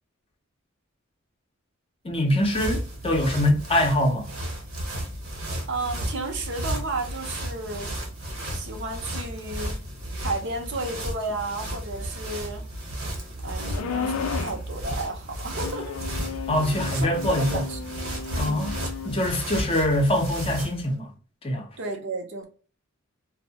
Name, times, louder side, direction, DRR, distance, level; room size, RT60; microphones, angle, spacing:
voice 1, 2.0-4.3 16.5-17.6 18.4-21.1 21.4-21.7, left 1 dB, 25° left, 0.6 m, -24 dB
sound 1, 2.1-20.9, equal, 75° right, 1.0 m, -33 dB
voice 2, 5.7-7.9 8.5-9.8 10.2-12.6 13.4-16.0 16.9-17.8 18.3-18.6 21.8-22.5, right 2 dB, 60° right, 0.6 m, -33 dB
sound 2, 13.7-14.6 15.5-19.2, left 6 dB, 80° left, 0.4 m, -34 dB
2.6 x 2.0 x 2.7 m
head